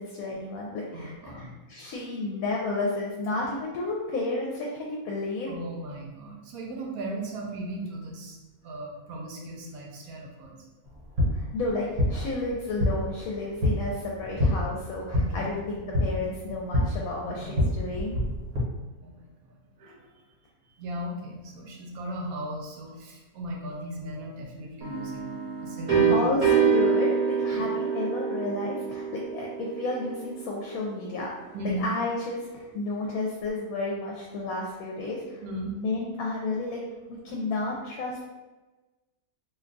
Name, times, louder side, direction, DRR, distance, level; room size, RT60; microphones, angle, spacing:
voice 1, 0.0-5.5 11.3-18.2 26.1-36.8 37.1-38.2, left 2 dB, 75° left, -2 dB, 1.0 m, -32 dB
voice 2, 0.9-1.5 5.5-8.4 8.6-10.6 15.1-15.5 17.2-17.7 19.0-20.1 20.8-26.3 27.5-27.6 31.5-31.9 35.4-35.7, right 1 dB, 80° right, 0 dB, 1.1 m, -37 dB
sound 1, 10.8-18.6, left 1 dB, 60° right, 1.3 m, -28 dB
sound 2, 24.8-30.5, right 6 dB, 35° right, 0.9 m, -26 dB
2.7 x 2.2 x 3.7 m, 1.2 s
omnidirectional pair, 1.6 m